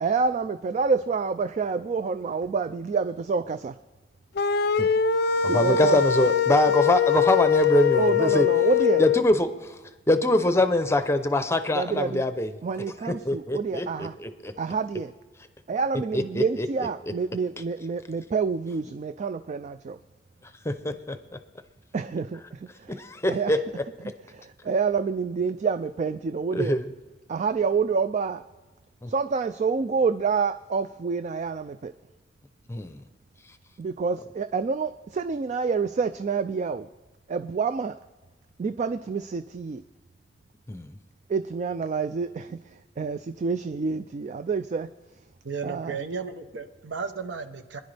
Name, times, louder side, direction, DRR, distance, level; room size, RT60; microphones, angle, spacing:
voice 1, 0.0-3.8 5.4-6.0 8.0-9.0 11.7-12.2 12.6-14.1 14.6-15.1 15.7-20.0 21.9-23.0 23.3-23.6 24.3-26.8 27.3-28.4 29.1-31.9 33.8-36.9 37.3-38.0 38.6-39.8 41.3-42.6 43.0-44.9 45.6-46.0, right 5 dB, 40° right, 11 dB, 0.3 m, -27 dB
sound 1, 4.4-9.2, left 7 dB, 60° left, 0.5 m, -22 dB
voice 2, 5.4-8.5 9.0-9.7 10.1-12.5 13.1-14.5 16.1-16.7 20.6-21.2 22.9-23.6 26.5-26.9 29.0-29.1 32.7-33.0 40.7-41.0, left 1 dB, 15° left, 10 dB, 0.6 m, -24 dB
voice 3, 45.4-47.8, right 5 dB, 75° right, 9 dB, 0.9 m, -34 dB
26.0 x 10.5 x 3.4 m, 1.2 s
head